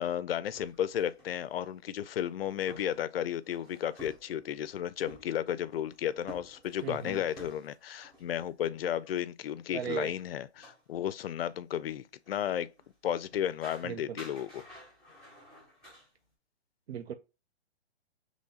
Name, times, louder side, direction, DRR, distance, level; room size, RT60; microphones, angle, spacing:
voice 1, 0.0-12.7 13.0-14.6, left 10 dB, 60° left, 0.4 m, -33 dB
sound 1, 0.5-8.7 9.1-9.2 10.2-10.3 10.5-10.8 11.5-11.6 12.2-12.9 13.3-16.1, right 1 dB, 10° right, 1.0 m, -53 dB
voice 2, 6.8-7.2 9.7-10.1 13.8-14.0 16.9-17.1, right 8 dB, 65° right, 0.5 m, -36 dB
3.1 x 2.5 x 4.0 m
hypercardioid pair, 165°, 33 cm